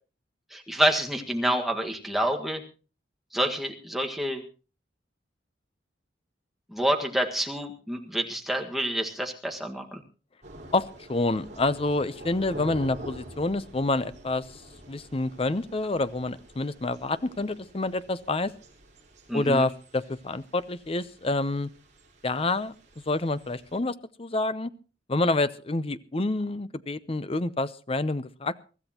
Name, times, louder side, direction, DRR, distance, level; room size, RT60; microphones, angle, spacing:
voice 1, 0.5-2.6 3.3-4.4 6.7-10.0 19.3-19.7, right 1 dB, ahead, 2 dB, 1.6 m, -28 dB
Thunder / Rain, 10.4-23.8, right 1 dB, 40° right, 7.2 m, -47 dB
voice 2, 10.7-14.6 14.9-18.5 19.3-21.7 22.2-22.7 23.1-24.7 25.1-28.6, left 2 dB, 30° left, 14 dB, 0.7 m, -28 dB
24.0 x 13.5 x 2.9 m, 0.35 s
head